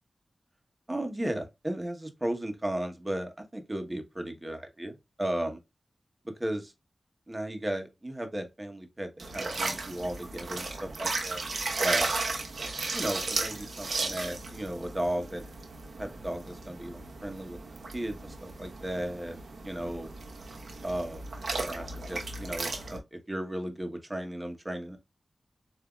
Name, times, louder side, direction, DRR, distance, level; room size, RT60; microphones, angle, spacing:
voice 1, 0.9-5.6 6.2-6.7 7.3-11.4 11.8-12.2 12.9-15.4 16.0-17.6 17.9-19.4 19.6-20.1 20.8-21.2 21.6-25.0, right 1 dB, 20° right, 1.1 m, -35 dB
sound 1, 9.2-23.0, right 3 dB, 75° right, 1.0 m, -35 dB
7.5 x 2.7 x 2.3 m
cardioid pair, 60°, 0 cm